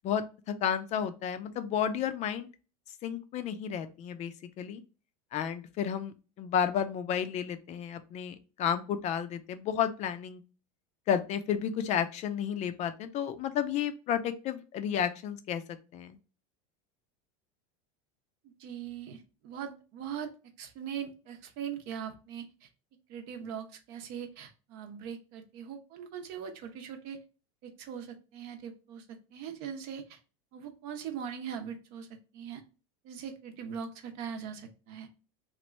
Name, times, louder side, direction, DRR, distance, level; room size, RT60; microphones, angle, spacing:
voice 1, 0.0-2.5 3.0-4.8 5.3-10.4 11.1-15.6 15.9-16.2, left 8 dB, 40° left, 10 dB, 0.4 m, -32 dB
voice 2, 18.6-20.3 20.6-22.7 23.1-27.2 27.6-30.2 30.5-32.1 32.3-32.6 33.0-35.1, right 8 dB, 55° right, 6 dB, 0.8 m, -41 dB
2.9 x 2.5 x 3.1 m, 0.33 s
supercardioid pair, 115°, 19 cm